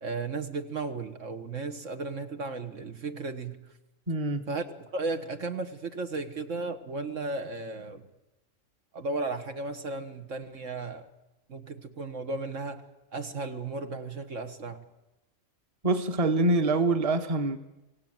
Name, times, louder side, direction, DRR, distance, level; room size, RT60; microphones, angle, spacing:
voice 1, 0.0-3.6 4.5-4.7 4.9-8.1 8.9-11.1 11.5-12.8 13.1-14.8, right 3 dB, 70° right, 7 dB, 2.0 m, -35 dB
voice 2, 4.1-4.5 15.8-17.6, right 2 dB, 30° right, 8 dB, 1.4 m, -25 dB
25.5 x 18.0 x 9.0 m, 0.97 s
omnidirectional pair, 1.3 m